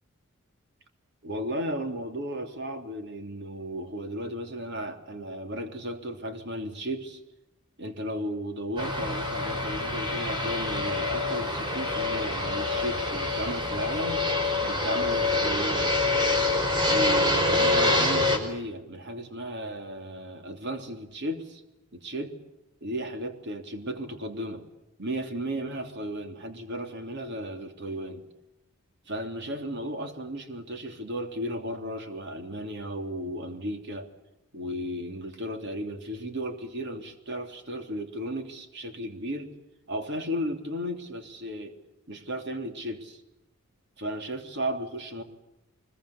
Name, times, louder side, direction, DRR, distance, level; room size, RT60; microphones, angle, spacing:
voice 1, 1.2-7.2 7.8-14.3 14.6-15.9 16.9-21.6 21.9-22.4 22.8-24.6 25.0-28.2 29.1-34.1 34.5-39.5 39.9-41.8 42.1-43.2 44.0-45.2, equal, 55° right, 5 dB, 3.4 m, -35 dB
Fixed-wing aircraft airplane, 8.8-18.4, left 2 dB, 20° right, 5.1 m, -26 dB
24.5 x 22.5 x 8.5 m, 0.89 s
head